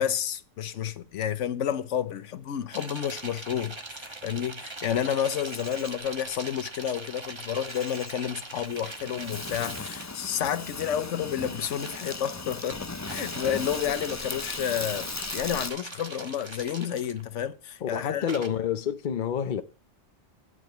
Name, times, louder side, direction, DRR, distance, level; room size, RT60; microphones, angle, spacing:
voice 1, 0.0-18.2, left 9 dB, 80° left, 1.1 m, -30 dB
sound 1, 2.7-10.1 11.5-12.2 12.7-17.4 18.3-18.5, right 2 dB, 25° right, 1.1 m, -41 dB
Insect, 5.0-15.7, left 3 dB, 30° left, 0.3 m, -38 dB
voice 2, 17.8-19.6, left 8 dB, 45° left, 0.8 m, -28 dB
9.5 x 5.0 x 7.9 m
omnidirectional pair, 1.2 m